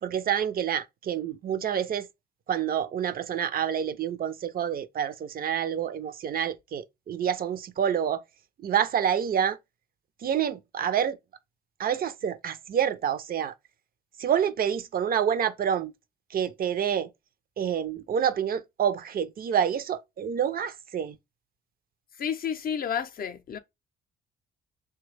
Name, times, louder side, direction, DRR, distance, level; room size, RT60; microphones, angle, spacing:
voice 1, 0.0-2.1 2.5-8.2 8.6-9.6 10.2-11.2 11.8-13.5 14.2-15.9 16.3-17.1 17.6-21.2, right 8 dB, 50° right, 0.4 m, -28 dB
voice 2, 22.2-23.6, left 8 dB, 50° left, 0.5 m, -31 dB
3.2 x 2.2 x 3.1 m
cardioid pair, 90°, 20 cm